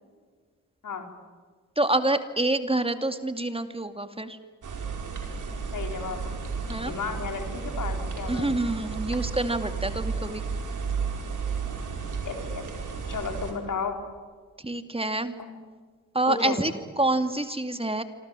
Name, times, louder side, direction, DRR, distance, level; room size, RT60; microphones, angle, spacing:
voice 1, 1.8-4.4 6.7-6.9 8.3-10.4 14.6-15.4 16.1-18.0, right 2 dB, 15° right, 8 dB, 2.4 m, -27 dB
sound 1, 4.6-13.5, right 5 dB, 60° right, 5.3 m, -33 dB
voice 2, 5.7-6.3 6.8-8.6 12.2-12.6 13.1-13.9 15.4-15.5 16.3-16.6, left 5 dB, 65° left, 4 dB, 4.7 m, -33 dB
26.5 x 26.0 x 7.7 m, 1.6 s
supercardioid pair, 40°, 34 cm